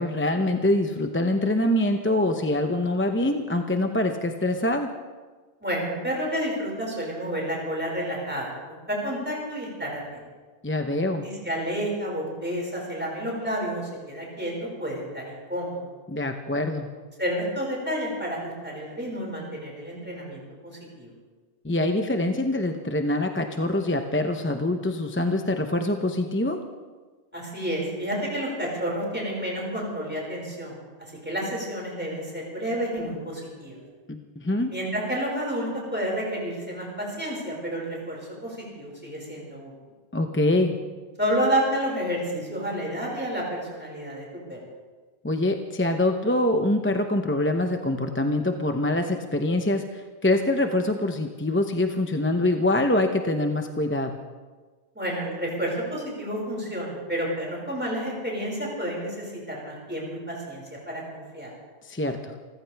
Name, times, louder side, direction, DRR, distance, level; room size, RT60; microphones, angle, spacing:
voice 1, 0.0-4.9 10.6-11.3 16.1-16.9 21.6-26.6 34.1-34.7 40.1-40.8 45.2-54.2 61.8-62.3, left 1 dB, 15° left, 5 dB, 0.7 m, -24 dB
voice 2, 5.6-10.2 11.2-15.9 17.2-20.4 21.0-21.1 27.3-30.7 31.2-33.8 34.7-39.7 41.2-44.6 55.0-61.5, equal, 10° right, -3 dB, 5.4 m, -30 dB
28.0 x 15.0 x 3.5 m, 1.4 s
omnidirectional pair, 1.2 m